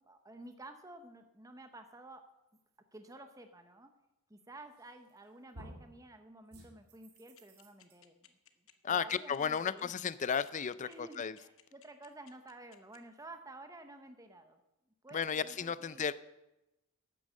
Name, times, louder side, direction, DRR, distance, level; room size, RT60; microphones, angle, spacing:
voice 1, 0.0-2.2 2.9-3.9 4.3-8.4 8.9-9.9 10.8-14.6 15.0-16.1, right 2 dB, 15° right, 6 dB, 0.9 m, -52 dB
sound 1, 4.8-5.2 5.5-5.9 6.5-7.9, right 1 dB, 85° right, 2.9 m, -53 dB
sound 2, 7.2-13.0, left 12 dB, 60° left, 1.0 m, -60 dB
voice 2, 8.8-11.4 15.1-16.1, left 7 dB, 35° left, 16 dB, 0.4 m, -34 dB
12.0 x 9.0 x 7.5 m, 0.95 s
head